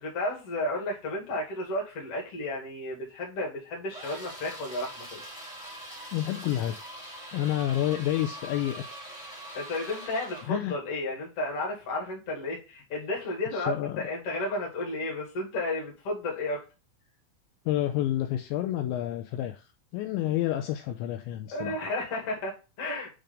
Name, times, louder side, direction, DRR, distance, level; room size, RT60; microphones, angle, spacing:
voice 1, 0.0-5.2 9.5-16.6 21.5-23.1, left 2 dB, 45° left, -2 dB, 2.2 m, -33 dB
sound 1, 3.9-10.6, right 1 dB, 15° left, 1.0 m, -43 dB
voice 2, 6.1-6.8 7.3-8.8 9.9-10.0 10.5-10.8 13.5-14.1 17.7-21.9, left 13 dB, 80° left, 6 dB, 2.7 m, -29 dB
7.6 x 3.3 x 5.1 m, 0.31 s
omnidirectional pair, 5.5 m